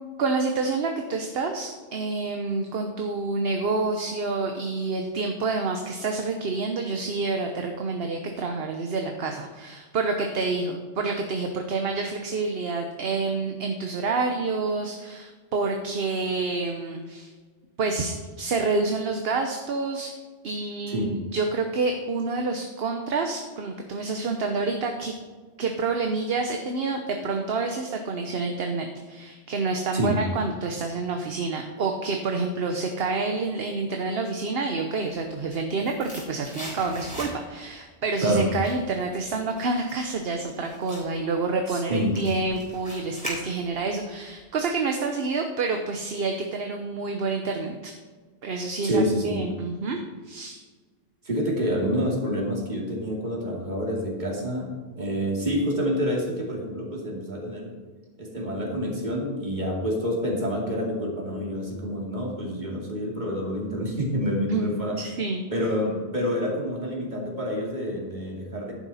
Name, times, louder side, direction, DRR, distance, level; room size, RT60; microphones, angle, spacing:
voice 1, 0.2-17.3 17.8-20.1 20.4-25.1 25.6-47.9 48.4-50.0 50.2-50.6 64.5-65.4, right 3 dB, 65° right, 4 dB, 1.1 m, -28 dB
sound 1, 35.3-37.7 38.1-43.9 44.2-44.3, equal, 5° left, 3.9 m, -40 dB
voice 2, 41.7-42.1 48.8-49.4 51.2-57.8 58.2-65.0 65.5-68.7, equal, 45° right, -1 dB, 2.7 m, -27 dB
11.0 x 9.2 x 4.2 m, 1.4 s
omnidirectional pair, 1.1 m